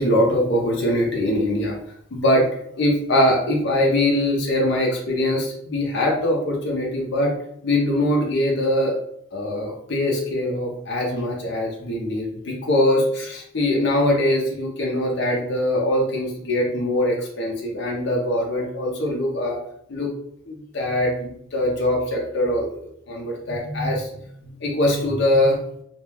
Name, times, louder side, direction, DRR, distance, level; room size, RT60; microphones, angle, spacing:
voice 1, 0.0-1.8 2.1-2.5 2.8-7.3 7.6-9.0 9.3-19.6 19.9-20.1 20.5-22.8 23.1-24.3 24.6-25.6, left 1 dB, 55° left, -1 dB, 0.5 m, -22 dB
2.2 x 2.2 x 3.1 m, 0.73 s
head